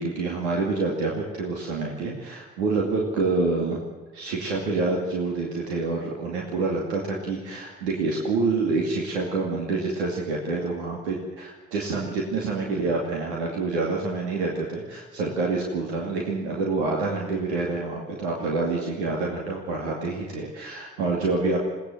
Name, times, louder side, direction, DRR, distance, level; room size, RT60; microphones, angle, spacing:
voice 1, 0.0-3.8 4.1-21.6, right 3 dB, 90° right, -1 dB, 2.5 m, -27 dB
21.0 x 17.5 x 7.9 m, 1.3 s
hypercardioid pair, 50°, 32 cm